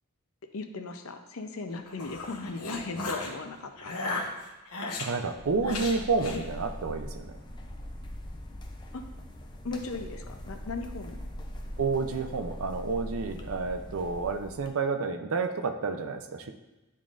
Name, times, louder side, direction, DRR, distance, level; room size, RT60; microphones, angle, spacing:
voice 1, 0.5-4.2 6.3-6.5 8.9-9.0 9.6-11.2, left 3 dB, 65° left, 6 dB, 0.6 m, -37 dB
sound 1, 1.7-3.3 3.8-5.1 5.6-6.4, left 3 dB, 90° left, 1.0 m, -35 dB
voice 2, 5.0-7.4 11.8-16.5, right 4 dB, 70° right, 7 dB, 0.5 m, -30 dB
sound 2, 5.3-14.7, equal, 20° left, 0.5 m, -41 dB
10.5 x 3.7 x 2.5 m, 1.0 s
head